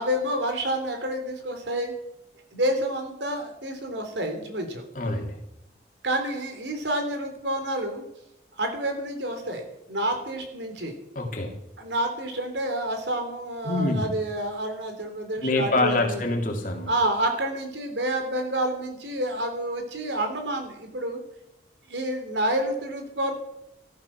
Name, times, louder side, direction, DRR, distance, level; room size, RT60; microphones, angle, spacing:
voice 1, 0.0-1.9 2.5-4.8 6.0-8.1 8.6-10.9 11.8-16.2 16.9-21.2 21.9-23.3, right 1 dB, 75° right, 5 dB, 3.5 m, -29 dB
voice 2, 4.9-5.4 11.1-11.6 13.6-14.1 15.4-16.9, left 2 dB, 45° left, 2 dB, 2.9 m, -25 dB
15.0 x 13.5 x 6.1 m, 0.86 s
head